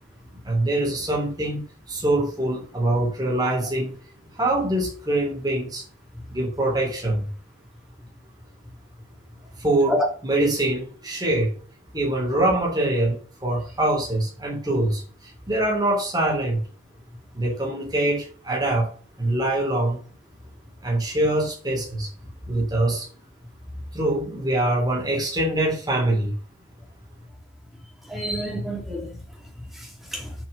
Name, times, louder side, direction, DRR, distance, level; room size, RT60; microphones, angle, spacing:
voice 1, 0.4-3.9 4.3-5.8 6.3-7.3 9.6-11.5 11.9-16.6 17.3-18.9 19.2-20.0 20.8-22.1 22.5-23.1 23.9-26.3, right 1 dB, 20° right, 3.6 m, -24 dB
voice 2, 28.1-29.2 29.7-30.3, equal, ahead, 2.4 m, -28 dB
7.8 x 5.9 x 5.4 m
head